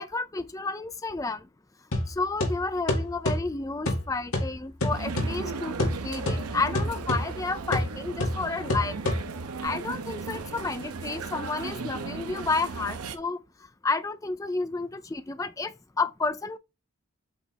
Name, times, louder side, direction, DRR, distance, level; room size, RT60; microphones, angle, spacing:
voice 1, 0.0-1.4 2.1-9.0 9.6-13.4 13.8-16.6, left 3 dB, 15° left, 0.4 m, -31 dB
sound 1, 1.9-9.6, left 1 dB, 75° left, 1.9 m, -30 dB
sound 2, 4.9-13.2, right 4 dB, 85° right, 0.8 m, -36 dB
7.9 x 3.3 x 4.3 m
head